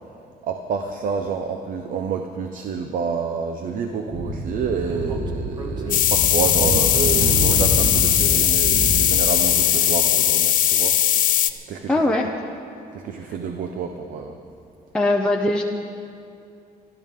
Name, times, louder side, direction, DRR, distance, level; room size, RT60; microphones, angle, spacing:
voice 1, 0.4-11.0 11.7-12.1 12.9-14.4, right 6 dB, 55° right, 5 dB, 0.8 m, -28 dB
Speech / Wind, 4.1-9.0, right 1 dB, 25° right, 1.5 m, -26 dB
sound 1, 5.9-11.5, left 12 dB, 55° left, 0.6 m, -19 dB
voice 2, 11.9-12.3 14.9-15.6, left 2 dB, 5° left, 0 dB, 0.6 m, -20 dB
26.5 x 12.5 x 3.7 m, 2.5 s
cardioid pair, 170°, 16 cm